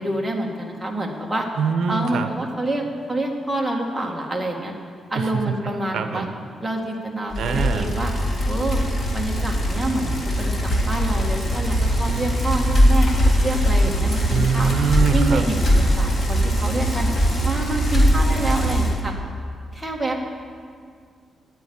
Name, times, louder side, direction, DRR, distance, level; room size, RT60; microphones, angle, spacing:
voice 1, 0.0-1.5 1.9-2.8 3.1-4.7 5.1-6.2 6.6-8.1 8.5-8.8 9.1-13.1 13.4-14.7 15.1-17.1 17.4-19.1 19.7-20.2, right 1 dB, 5° right, -1 dB, 1.6 m, -27 dB
voice 2, 1.6-2.3 5.1-6.3 7.4-7.9 14.3-15.4, right 6 dB, 75° right, 8 dB, 0.7 m, -24 dB
Bicycle, 7.3-19.0, equal, 40° left, 1.9 m, -21 dB
9.8 x 9.2 x 8.5 m, 2.1 s
wide cardioid pair, 145°, 0 cm